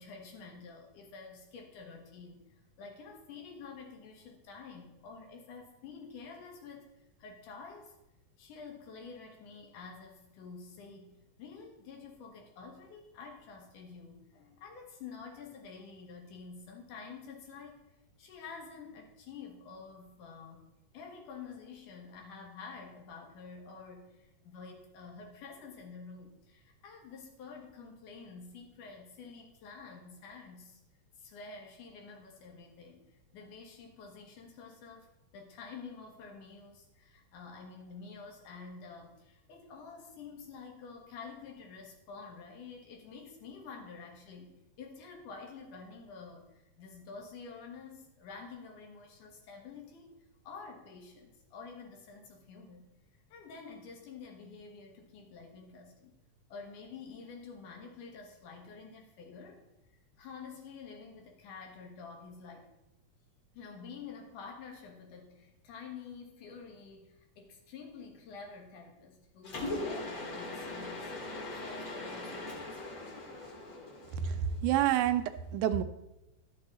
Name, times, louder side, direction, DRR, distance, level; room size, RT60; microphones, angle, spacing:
voice 1, 0.0-6.9 7.2-8.0 8.4-17.8 18.2-30.8 31.2-33.1 33.3-35.1 35.3-44.5 44.8-50.1 50.4-52.9 53.3-56.1 56.5-59.7 60.2-62.7 63.5-71.2 71.5-72.9, left 5 dB, 90° left, 2 dB, 3.0 m, -49 dB
Mechanisms, 69.4-74.6, left 2 dB, 45° left, 2.4 m, -40 dB
voice 2, 74.6-75.8, right 11 dB, 85° right, 11 dB, 2.1 m, -28 dB
12.0 x 6.2 x 4.1 m, 0.94 s
omnidirectional pair, 3.5 m